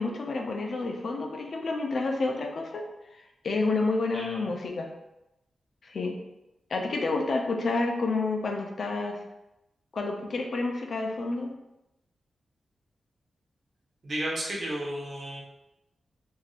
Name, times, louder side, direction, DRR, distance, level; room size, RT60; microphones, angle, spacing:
voice 1, 0.0-2.8 3.2-4.9 5.8-6.1 6.7-9.2 9.9-11.5, left 3 dB, 60° left, 2 dB, 0.5 m, -29 dB
voice 2, 14.0-15.4, right 1 dB, 55° right, -4 dB, 1.0 m, -33 dB
3.4 x 2.6 x 2.4 m, 0.92 s
wide cardioid pair, 95°, 0 cm